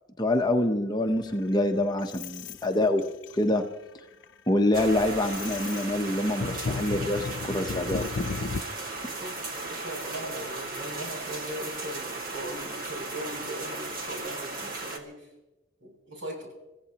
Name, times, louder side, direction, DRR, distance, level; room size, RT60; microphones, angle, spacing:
voice 1, 0.2-3.0 3.4-3.6 4.5-8.3, left 1 dB, 20° left, 4 dB, 0.8 m, -26 dB
sound 1, 1.1-2.6 3.0-3.5 4.0-4.2 4.6-8.6, left 4 dB, 65° left, 0.5 m, -34 dB
sound 2, 4.7-15.0, right 2 dB, 45° right, 2.0 m, -36 dB
voice 2, 9.2-15.3 15.8-16.5, right 1 dB, 70° right, -1 dB, 7.5 m, -39 dB
29.5 x 15.5 x 2.9 m, 1.0 s
head